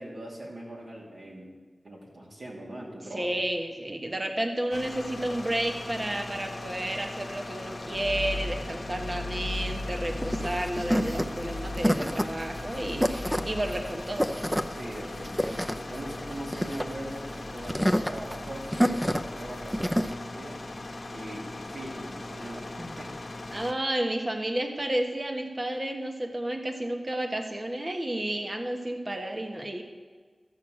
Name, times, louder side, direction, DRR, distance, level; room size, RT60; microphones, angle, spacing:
voice 1, 0.0-1.5 1.8-3.4 14.7-17.8 18.1-20.6 21.1-23.1 23.5-23.6, right 1 dB, 75° right, -3 dB, 2.8 m, -41 dB
voice 2, 3.1-14.3 23.5-29.8, right 1 dB, 40° right, 4 dB, 1.3 m, -31 dB
sound 1, 4.7-23.7, left 2 dB, 60° left, 0.9 m, -40 dB
sound 2, 7.9-13.8, left 2 dB, 90° left, 0.7 m, -37 dB
sound 3, 9.5-20.1, equal, 10° right, 0.6 m, -29 dB
13.0 x 7.4 x 6.4 m, 1.5 s
wide cardioid pair, 50°, 0 cm